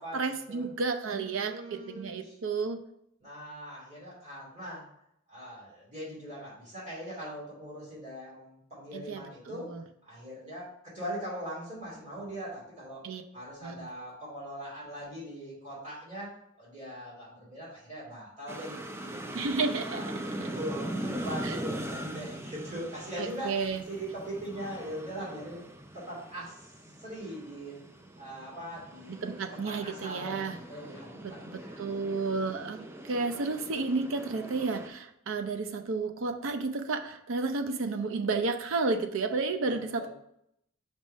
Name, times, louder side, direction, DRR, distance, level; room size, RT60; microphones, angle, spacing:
voice 1, 0.1-2.8 8.9-9.2 9.5-9.8 13.0-13.2 13.6-13.9 19.3-20.0 21.4-21.6 23.2-23.8 29.2-30.5 31.4-32.8 33.0-40.1, right 4 dB, 70° right, 6 dB, 0.5 m, -31 dB
voice 2, 1.1-2.4 3.2-4.9 5.3-9.7 10.0-13.0 13.3-19.4 19.9-25.6 25.9-26.7 27.0-27.8 28.2-31.8 32.4-32.5 39.6-40.1, equal, 35° right, -7 dB, 2.5 m, -41 dB
sound 1, 18.5-34.9, right 1 dB, 10° right, 0.3 m, -41 dB
5.3 x 3.5 x 5.2 m, 0.75 s
head